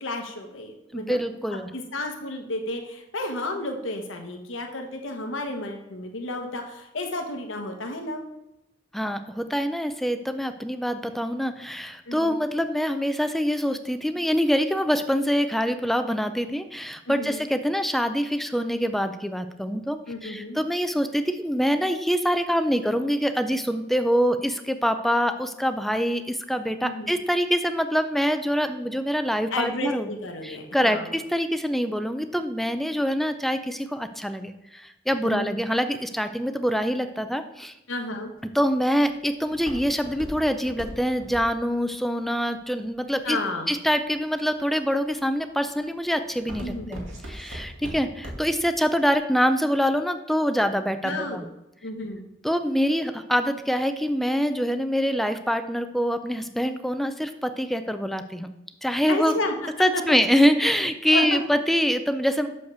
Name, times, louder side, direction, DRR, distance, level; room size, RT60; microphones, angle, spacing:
voice 1, 0.0-1.2 1.5-8.2 12.1-12.4 17.1-17.4 20.1-20.6 26.8-27.2 29.5-31.1 35.2-35.6 37.9-38.3 43.2-43.7 46.6-47.0 51.0-51.4 51.8-52.3 59.0-59.5 59.9-60.2 61.1-61.4, left 2 dB, 80° left, 4 dB, 1.2 m, -32 dB
voice 2, 0.9-1.7 8.9-30.1 30.4-37.7 38.4-43.4 43.7-51.5 52.4-58.5 58.8-59.3 59.8-62.5, equal, ahead, 9 dB, 0.4 m, -25 dB
Walk footsteps, 38.4-43.5 44.1-44.6 45.1-45.4 45.8-48.7 49.0-49.1, right 1 dB, 80° right, 2.2 m, -39 dB
6.5 x 5.3 x 6.7 m, 0.90 s
head